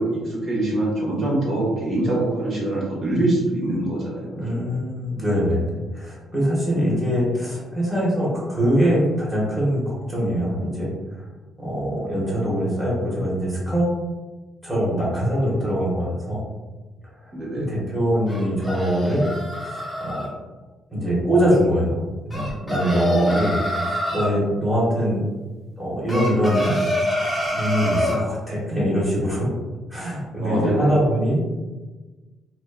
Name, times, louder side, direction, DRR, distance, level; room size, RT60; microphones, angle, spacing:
voice 1, 0.0-4.7 6.9-7.0 17.3-17.8 23.0-23.4 30.4-31.0, right 1 dB, 45° right, -5 dB, 1.3 m, -24 dB
voice 2, 4.3-5.6 5.9-11.2 11.6-13.9 14.6-16.4 17.2-17.3 17.7-19.3 19.6-20.3 20.9-23.6 24.1-25.2 25.8-26.8 27.5-29.5 29.9-31.4, equal, 10° right, -7 dB, 1.2 m, -23 dB
sound 1, 18.3-20.3 22.3-24.3 26.1-28.2, equal, 5° left, 0.9 m, -25 dB
2.8 x 2.3 x 2.3 m, 1.2 s
cardioid pair, 90°, 0 cm